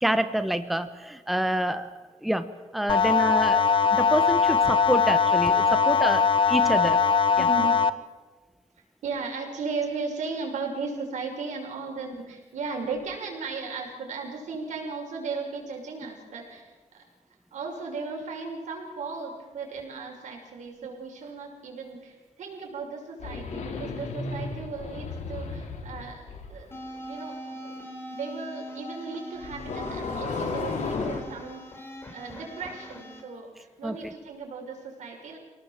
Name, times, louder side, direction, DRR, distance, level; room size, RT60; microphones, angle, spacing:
voice 1, 0.0-1.9 2.2-3.6 3.9-7.0 33.8-34.1, right 1 dB, ahead, 10 dB, 1.0 m, -27 dB
sound 1, 2.9-7.9, left 6 dB, 45° left, 0.9 m, -21 dB
voice 2, 7.4-7.8 9.0-16.7 17.5-27.8 28.0-35.4, right 4 dB, 85° right, 1 dB, 6.2 m, -36 dB
sound 2, 23.2-26.5 29.4-31.2, left 4 dB, 75° left, 3.6 m, -33 dB
sound 3, 26.7-33.2, equal, 20° left, 4.3 m, -41 dB
26.0 x 18.5 x 7.5 m, 1.3 s
wide cardioid pair, 145°, 12 cm